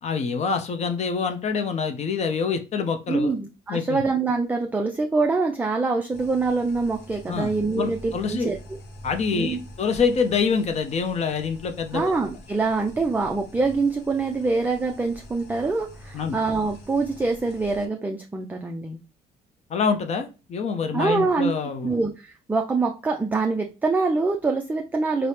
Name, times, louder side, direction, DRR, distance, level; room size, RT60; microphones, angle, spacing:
voice 1, 0.0-3.3 3.7-4.0 7.3-7.5 7.8-8.5 9.0-12.1 16.1-16.4 19.7-21.9, left 5 dB, 40° left, 6 dB, 0.5 m, -26 dB
voice 2, 3.1-8.6 9.3-9.6 11.9-19.0 20.9-21.5 21.8-25.3, right 3 dB, 10° right, 3 dB, 0.3 m, -25 dB
sound 1, 6.1-17.9, left 1 dB, 75° left, 0.8 m, -45 dB
4.1 x 2.0 x 3.2 m, 0.32 s
cardioid pair, 110°, 17 cm